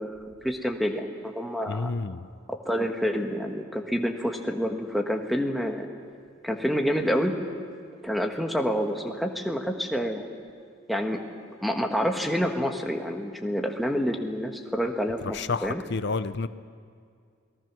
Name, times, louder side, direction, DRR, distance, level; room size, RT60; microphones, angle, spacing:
voice 1, 0.0-1.9 2.5-5.9 6.4-7.4 8.0-10.2 10.9-11.2 11.6-15.8, equal, ahead, 2 dB, 1.5 m, -28 dB
voice 2, 1.7-2.3 15.3-16.5, left 4 dB, 55° left, 13 dB, 0.7 m, -30 dB
28.5 x 19.5 x 6.1 m, 2.2 s
head